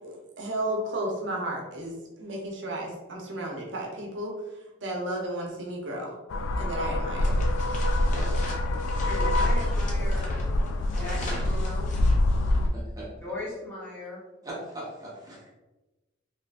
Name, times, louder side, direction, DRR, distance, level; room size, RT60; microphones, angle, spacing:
voice 1, 0.0-1.9 2.2-4.3 4.8-6.1 6.6-7.3, right 1 dB, 60° right, -1 dB, 0.6 m, -33 dB
sound 1, 6.3-12.7, left 1 dB, 90° left, 0.3 m, -25 dB
sound 2, 7.2-12.7, left 1 dB, 40° left, 0.6 m, -40 dB
voice 2, 8.0-8.4 12.7-13.1 14.4-15.5, right 1 dB, 20° right, -6 dB, 0.8 m, -40 dB
voice 3, 8.7-10.3 10.7-11.9 13.2-14.2, left 2 dB, 10° left, -9 dB, 1.1 m, -38 dB
2.7 x 2.4 x 3.3 m, 1.1 s
head